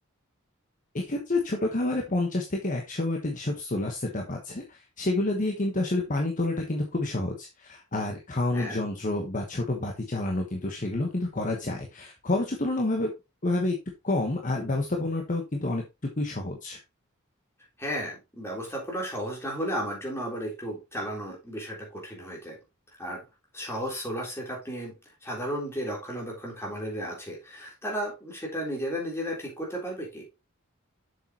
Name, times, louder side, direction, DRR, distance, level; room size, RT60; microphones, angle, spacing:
voice 1, 0.9-13.1 13.4-13.8 14.0-15.8 16.2-16.8, left 2 dB, 40° left, 1 dB, 1.2 m, -29 dB
voice 2, 17.8-22.6 23.0-23.2 23.5-30.2, equal, 10° left, -2 dB, 3.6 m, -34 dB
7.5 x 6.8 x 3.0 m, 0.24 s
head